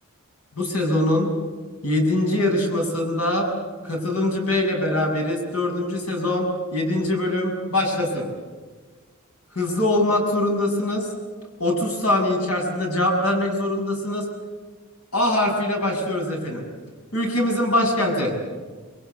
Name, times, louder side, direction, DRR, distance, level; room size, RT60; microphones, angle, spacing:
voice 1, 0.6-1.3 1.8-3.5 3.8-8.3 9.5-11.1 11.6-14.3 15.1-16.6 17.1-18.3, left 1 dB, 85° left, 1 dB, 7.0 m, -23 dB
27.0 x 22.0 x 8.2 m, 1.4 s
head